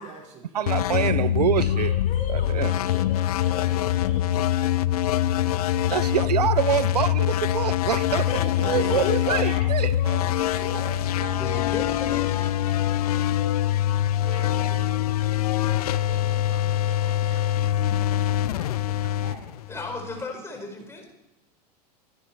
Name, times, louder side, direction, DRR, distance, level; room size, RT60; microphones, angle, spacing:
voice 1, 0.0-0.8 2.3-2.9 5.6-6.4 7.9-9.7 19.7-19.8 21.0-21.1, right 5 dB, 35° right, 5.1 m, -48 dB
voice 2, 0.5-1.9 2.3-2.7 5.9-8.3 8.6-9.9 14.4-14.6, right 10 dB, 75° right, 0.5 m, -25 dB
sound 1, 0.7-20.2, left 12 dB, 65° left, 0.7 m, -24 dB
voice 3, 1.6-4.3 7.8-11.0, left 4 dB, 35° left, 5.8 m, -36 dB
voice 4, 10.0-19.6, right 6 dB, 50° right, 5.6 m, -46 dB
voice 5, 11.4-12.5 19.7-21.1, left 2 dB, 10° left, 4.6 m, -35 dB
26.5 x 11.0 x 4.5 m
figure-of-eight pair, 90°, 21 cm